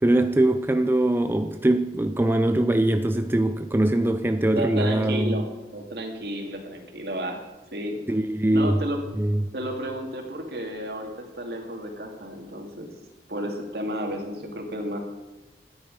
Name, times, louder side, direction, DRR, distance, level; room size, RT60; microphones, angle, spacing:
voice 1, 0.0-5.5 8.1-8.8 9.2-9.5, right 1 dB, 10° right, 0.4 m, -22 dB
voice 2, 4.5-7.4 7.7-8.0 8.5-9.0 9.5-12.9 13.3-15.0, equal, 65° right, 2.2 m, -32 dB
13.0 x 9.8 x 5.2 m
head